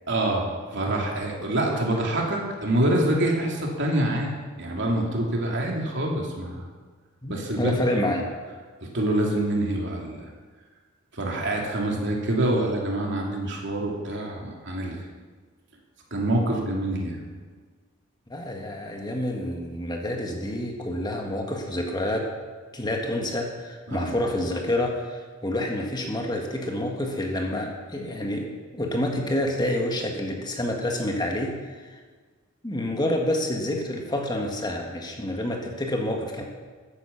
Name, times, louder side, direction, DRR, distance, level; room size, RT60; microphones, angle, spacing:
voice 1, 0.1-6.7 7.3-7.8 8.1-8.2 8.8-10.3 11.1-15.0 16.1-17.2 23.9-24.2, right 1 dB, 60° right, -1 dB, 3.0 m, -26 dB
voice 2, 7.2-8.3 18.3-22.3 22.7-31.6 32.6-36.4, left 1 dB, 20° left, 2 dB, 1.7 m, -28 dB
14.5 x 9.6 x 7.2 m, 1.5 s
head